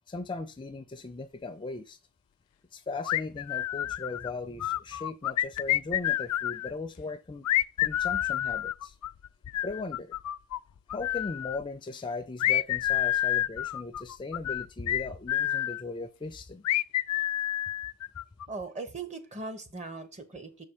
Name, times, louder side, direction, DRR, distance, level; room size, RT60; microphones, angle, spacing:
voice 1, 0.1-2.0 2.7-7.5 7.8-8.9 9.6-10.2 10.9-16.7, left 3 dB, 20° left, 0.4 m, -38 dB
sound 1, 3.0-4.3 4.6-6.7 7.4-10.6 10.9-11.6 12.4-15.8 16.6-18.5, left 13 dB, 85° left, 0.3 m, -29 dB
voice 2, 18.5-20.6, right 3 dB, 30° right, 1.0 m, -39 dB
6.7 x 4.3 x 5.1 m
head